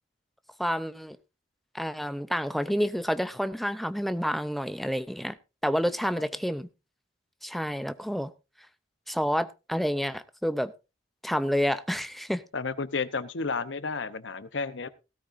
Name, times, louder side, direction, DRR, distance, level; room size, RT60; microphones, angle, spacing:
voice 1, 0.6-1.2 1.7-5.4 5.6-6.7 7.4-8.3 9.1-10.7 11.2-12.4, equal, ahead, 0.6 m, -29 dB
voice 2, 12.5-14.9, left 4 dB, 75° left, 0.9 m, -32 dB
17.0 x 13.0 x 2.6 m
head